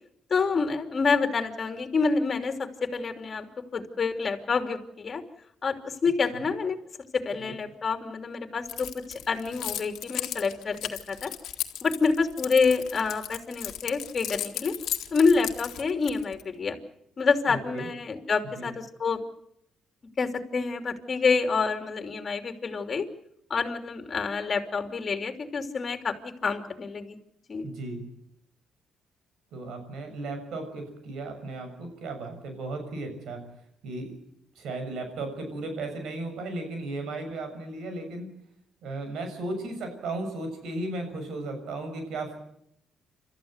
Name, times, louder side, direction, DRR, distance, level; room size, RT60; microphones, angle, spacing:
voice 1, 0.3-3.5 3.7-5.2 5.6-6.8 7.1-11.3 11.8-14.7 15.1-16.8 17.2-19.2 20.2-23.1 23.5-27.2 27.5-27.7, left 4 dB, 40° left, 6 dB, 2.9 m, -27 dB
Keys jangling, 8.7-16.4, left 11 dB, 80° left, 1.8 m, -35 dB
voice 2, 17.5-17.9 18.5-18.7 27.6-28.0 29.5-33.4 33.8-34.1 34.5-38.3 38.8-42.4, right 2 dB, 80° right, 6 dB, 6.9 m, -35 dB
28.5 x 14.0 x 8.0 m, 0.75 s
cardioid pair, 90°, 0 cm